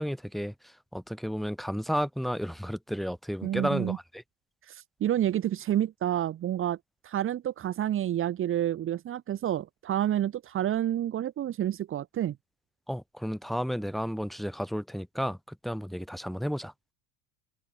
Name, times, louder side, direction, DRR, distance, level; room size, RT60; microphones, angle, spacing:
voice 1, 0.0-4.2 12.9-16.7, equal, ahead, 5.5 m, -32 dB
voice 2, 3.4-4.0 4.7-6.8 7.0-12.4, right 11 dB, 35° right, 3.4 m, -29 dB
cardioid pair, 160°, 37 cm